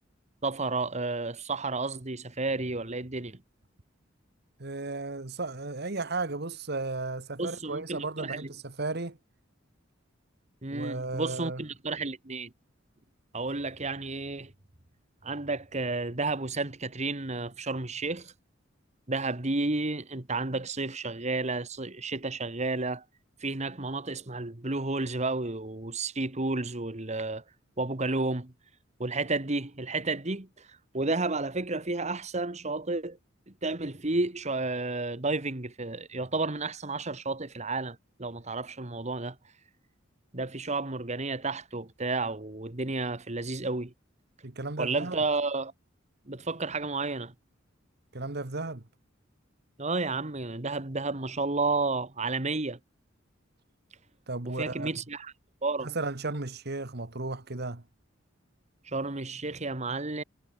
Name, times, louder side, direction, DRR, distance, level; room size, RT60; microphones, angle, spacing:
voice 1, 0.4-3.4 7.4-8.5 10.6-12.5 13.3-14.5 15.2-18.3 19.1-23.0 23.4-27.4 27.8-28.5 29.0-33.2 33.6-39.4 40.3-43.9 44.8-45.7 46.3-47.3 49.8-52.8 54.5-55.3 55.6-55.9 58.8-60.2, right 3 dB, 35° right, 1.7 m, -31 dB
voice 2, 4.6-9.2 10.7-11.6 44.4-45.2 48.1-48.8 54.3-54.9 55.8-57.8, right 3 dB, 55° right, 1.6 m, -34 dB
head